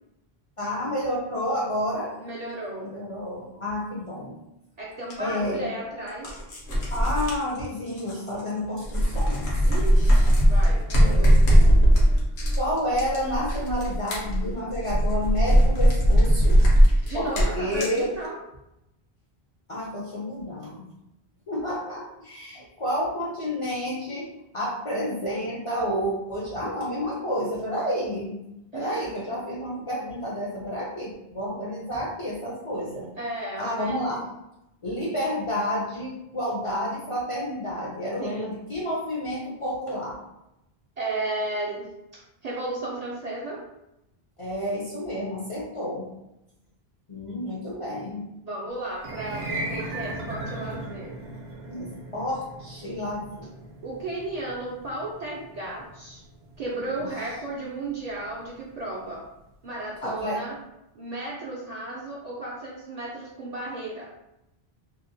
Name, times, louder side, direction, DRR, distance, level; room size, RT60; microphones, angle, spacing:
voice 1, 0.6-2.1 2.8-4.4 5.2-5.7 6.9-9.5 11.0-11.3 12.5-16.6 17.1-18.1 19.7-20.9 21.5-28.4 28.7-33.1 33.6-34.2 34.8-40.2 44.4-46.1 47.1-48.2 51.7-53.5 57.0-57.1 60.0-60.4, equal, 45° left, -5 dB, 0.5 m, -30 dB
voice 2, 2.2-2.9 4.8-6.3 9.6-11.4 17.1-18.4 28.7-29.0 33.2-34.3 38.2-38.5 41.0-41.9 42.1-43.6 48.4-51.1 53.8-56.2 56.6-59.2 59.6-60.6 60.9-64.0, right 2 dB, 55° right, -5 dB, 0.5 m, -34 dB
sound 1, 5.1-5.2 6.1-8.5 8.8-18.0, equal, 80° left, 1.0 m, -19 dB
sound 2, 48.9-59.3, right 1 dB, 75° right, 0.8 m, -38 dB
2.8 x 2.0 x 2.6 m, 0.88 s
omnidirectional pair, 1.1 m